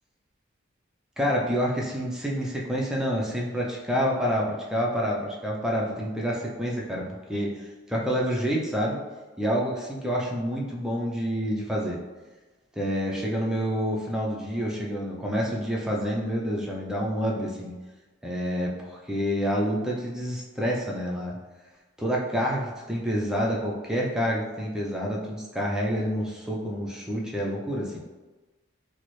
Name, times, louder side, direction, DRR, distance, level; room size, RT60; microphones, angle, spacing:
voice 1, 1.2-9.0 9.4-12.0 12.8-17.7 18.2-21.4 22.0-28.0, equal, 5° right, -3 dB, 0.4 m, -28 dB
4.2 x 2.0 x 3.1 m, 1.2 s
head